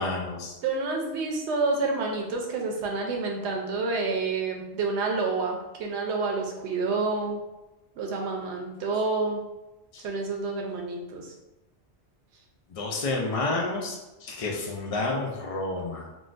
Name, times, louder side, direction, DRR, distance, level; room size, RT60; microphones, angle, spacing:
voice 1, 0.0-0.5 9.9-10.0 12.7-16.1, left 2 dB, 65° left, 0 dB, 0.3 m, -30 dB
voice 2, 0.6-7.4 8.0-9.4 10.0-11.3, right 3 dB, 80° right, 1 dB, 0.9 m, -28 dB
3.7 x 2.4 x 2.5 m, 1.0 s
omnidirectional pair, 1.1 m